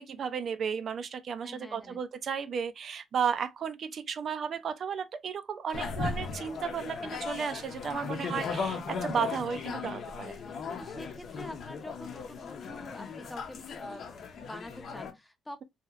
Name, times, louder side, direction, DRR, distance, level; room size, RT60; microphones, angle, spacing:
voice 1, 0.0-10.4, right 7 dB, 55° right, 0.4 m, -34 dB
voice 2, 1.4-2.0 5.7-6.0 8.3-8.6 10.8-14.1 14.3-15.6, left 1 dB, 10° left, 0.6 m, -46 dB
sound 1, 5.7-15.1, left 5 dB, 60° left, 0.8 m, -37 dB
2.8 x 2.8 x 2.4 m
cardioid pair, 90°, 0 cm